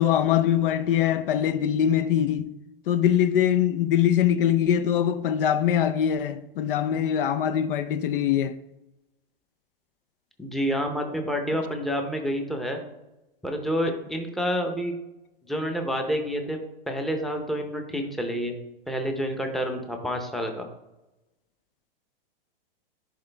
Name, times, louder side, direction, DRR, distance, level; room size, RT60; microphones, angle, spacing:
voice 1, 0.0-2.5 2.9-8.6, left 10 dB, 65° left, 0.6 m, -23 dB
voice 2, 10.4-12.8 13.4-14.9 15.4-16.6 16.9-18.6 18.9-20.7, equal, ahead, 0.7 m, -28 dB
11.0 x 3.9 x 3.3 m
hypercardioid pair, 140°, 29 cm